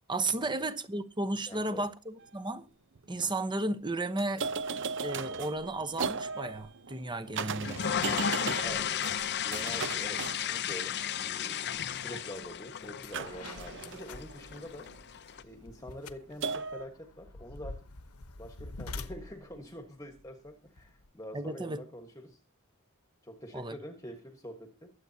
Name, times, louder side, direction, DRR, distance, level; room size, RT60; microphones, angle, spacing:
voice 1, 0.1-2.7 3.1-4.5 5.0-7.8 21.3-21.8 23.5-23.8, right 2 dB, 20° right, 1.0 m, -34 dB
voice 2, 1.5-1.9 8.6-9.0 9.4-14.9 15.4-17.8 18.4-22.4 23.2-24.9, equal, 15° left, 1.4 m, -46 dB
sound 1, 2.2-2.3 3.0-3.3 4.2-11.1 13.1-15.1 16.4-16.9, right 5 dB, 55° right, 0.8 m, -37 dB
sound 2, 7.4-15.4, left 8 dB, 50° left, 0.6 m, -34 dB
sound 3, 12.3-12.5 12.8-21.1, left 3 dB, 80° left, 1.1 m, -47 dB
23.0 x 8.3 x 2.8 m
head